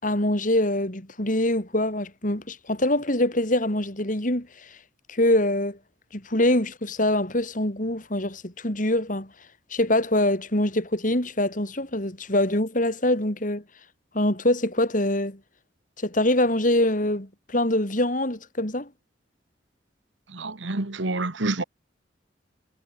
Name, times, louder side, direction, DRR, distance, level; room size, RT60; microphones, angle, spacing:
voice 1, 0.0-4.8 5.1-5.8 6.1-9.3 9.7-13.6 14.1-15.4 16.0-18.9, left 1 dB, 45° left, 4.2 m, -24 dB
voice 2, 20.3-21.6, right 2 dB, 85° right, 1.7 m, -28 dB
head